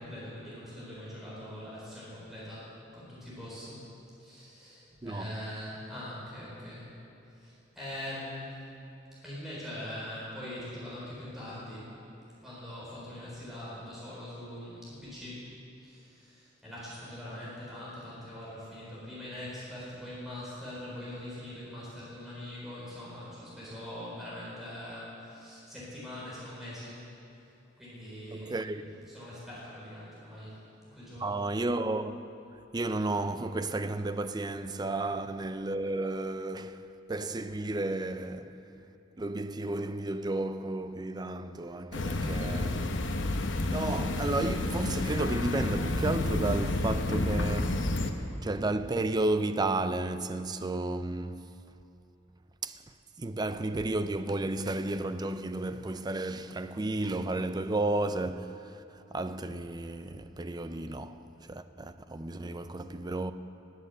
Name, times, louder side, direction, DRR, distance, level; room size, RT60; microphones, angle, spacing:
voice 1, 0.0-3.8 4.2-6.9 7.3-8.6 9.2-11.9 12.4-15.4 15.8-27.1 27.4-27.5 27.8-30.6 30.9-31.4 34.8-35.1 42.0-42.4, left 1 dB, ahead, 4.3 m, -42 dB
voice 2, 28.3-29.0 31.2-32.2 32.7-38.6 39.2-42.9 43.7-48.0 48.4-51.5 52.6-52.8 53.2-58.8 59.1-63.3, right 2 dB, 20° right, 0.5 m, -32 dB
sound 1, 41.9-48.1, left 2 dB, 70° left, 1.0 m, -30 dB
19.5 x 7.9 x 8.0 m
head